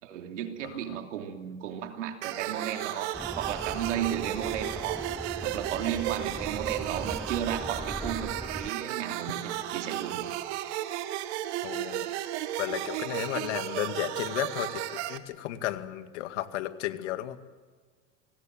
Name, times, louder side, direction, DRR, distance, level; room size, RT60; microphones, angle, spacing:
voice 1, 0.0-5.1 5.4-10.3, right 10 dB, 85° right, 5 dB, 3.1 m, -34 dB
voice 2, 0.6-1.0 11.6-12.1 12.6-17.6, left 14 dB, 75° left, 9 dB, 2.1 m, -34 dB
sound 1, 2.2-15.2, right 13 dB, 70° right, 1.9 m, -34 dB
sound 2, 3.1-8.7, equal, ahead, 0.7 m, -40 dB
27.5 x 19.5 x 7.7 m, 1.5 s
supercardioid pair, 105°, 35 cm